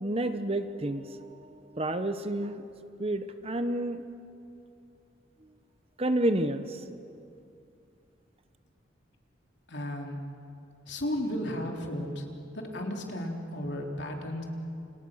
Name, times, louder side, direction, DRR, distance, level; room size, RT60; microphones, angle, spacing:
voice 1, 0.0-2.6 3.0-4.0 6.0-6.8, right 1 dB, 30° right, 10 dB, 1.0 m, -30 dB
voice 2, 9.7-10.2 10.9-12.2 12.5-14.4, left 1 dB, 65° left, 1 dB, 3.6 m, -34 dB
29.5 x 28.5 x 6.5 m, 2.6 s
head